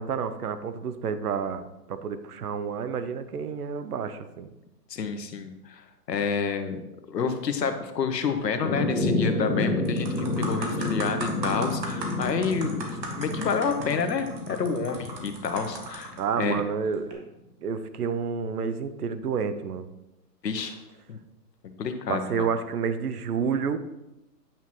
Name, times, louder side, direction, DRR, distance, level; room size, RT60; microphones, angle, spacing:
voice 1, 0.0-4.5 16.2-17.3 17.6-19.9 22.1-23.8, right 6 dB, 65° right, 11 dB, 0.8 m, -29 dB
voice 2, 4.9-6.8 7.1-16.6 20.4-20.8 21.1-21.2 21.8-22.5, left 5 dB, 75° left, 7 dB, 1.2 m, -29 dB
sound 1, 8.6-16.4, left 2 dB, 10° left, 1.4 m, -30 dB
sound 2, 9.2-9.5 9.8-16.2 16.9-17.1, right 2 dB, 80° right, 2.0 m, -37 dB
9.2 x 5.9 x 3.1 m, 0.94 s
hypercardioid pair, 170°, 50 cm